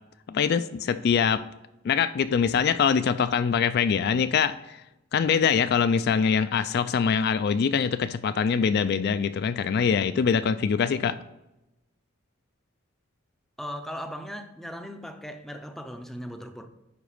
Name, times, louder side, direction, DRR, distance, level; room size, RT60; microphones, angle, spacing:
voice 1, 0.3-1.4 1.8-4.8 5.1-11.2, left 6 dB, 55° left, 12 dB, 0.3 m, -23 dB
voice 2, 13.6-16.7, equal, ahead, 6 dB, 0.5 m, -38 dB
10.0 x 4.0 x 5.0 m, 0.93 s
head